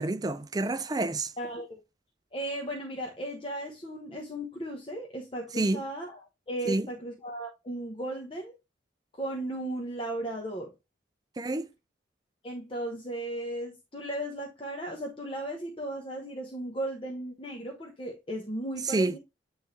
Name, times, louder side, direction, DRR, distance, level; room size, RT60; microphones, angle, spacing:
voice 1, 0.0-1.3 5.5-5.8 6.7-6.9 11.4-11.7 18.8-19.1, right 2 dB, 20° right, 0.4 m, -28 dB
voice 2, 1.4-1.8 2.3-6.2 6.5-8.5 9.2-10.7 12.4-19.2, right 1 dB, 30° left, 1.0 m, -36 dB
9.0 x 3.3 x 3.2 m
head